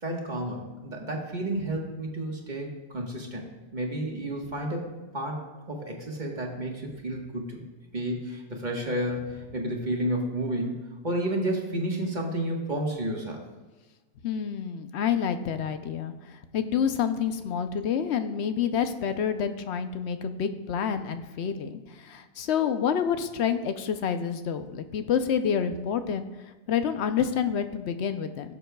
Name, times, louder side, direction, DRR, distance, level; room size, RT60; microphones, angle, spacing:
voice 1, 0.0-3.4 3.7-4.8 5.1-5.4 5.7-7.6 7.9-10.8 11.0-13.4, right 1 dB, 40° right, 0 dB, 1.5 m, -31 dB
voice 2, 14.2-26.3 26.7-28.6, left 7 dB, 75° left, 9 dB, 0.9 m, -28 dB
16.5 x 7.0 x 2.3 m, 1.2 s
omnidirectional pair, 1.2 m